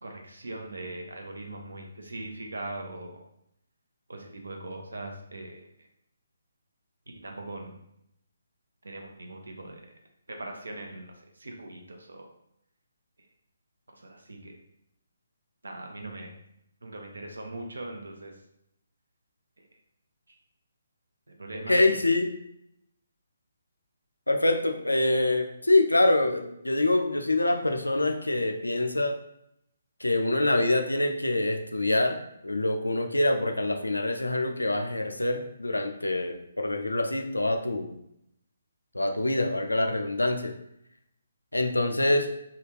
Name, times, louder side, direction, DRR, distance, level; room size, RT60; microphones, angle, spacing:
voice 1, 0.0-3.2 4.1-5.6 7.2-7.8 8.8-9.9 10.3-12.3 13.9-14.6 15.6-16.4 16.8-18.3 20.3-20.4 21.3-21.9, right 2 dB, 75° right, 2 dB, 0.7 m, -40 dB
voice 2, 21.7-22.3 24.3-29.2 30.0-32.2 32.4-38.0 38.9-40.5 41.5-42.3, left 2 dB, 90° left, 5 dB, 0.4 m, -25 dB
3.3 x 2.3 x 3.1 m, 0.77 s
figure-of-eight pair, 140°, 0 cm